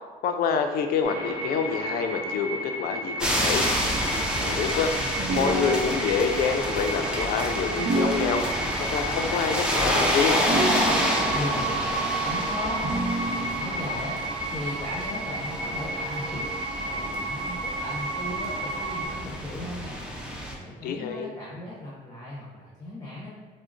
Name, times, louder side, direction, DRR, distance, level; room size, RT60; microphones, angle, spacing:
voice 1, 0.2-3.7 4.3-4.9 5.3-8.4 8.8-10.4 20.8-21.3, left 6 dB, 65° left, 6 dB, 0.4 m, -27 dB
sound 1, 1.0-19.1, right 2 dB, 55° right, 1.1 m, -32 dB
sound 2, 3.2-20.5, equal, 5° right, 0.5 m, -29 dB
sound 3, 5.2-6.3 7.8-9.0 10.4-11.5 12.8-13.8, right 1 dB, 75° right, 0.6 m, -29 dB
voice 2, 11.3-14.2 14.5-16.5 16.8-20.0 20.6-23.3, left 1 dB, 15° left, -7 dB, 0.8 m, -37 dB
4.6 x 2.1 x 2.5 m, 1.3 s
cardioid pair, 110°, 17 cm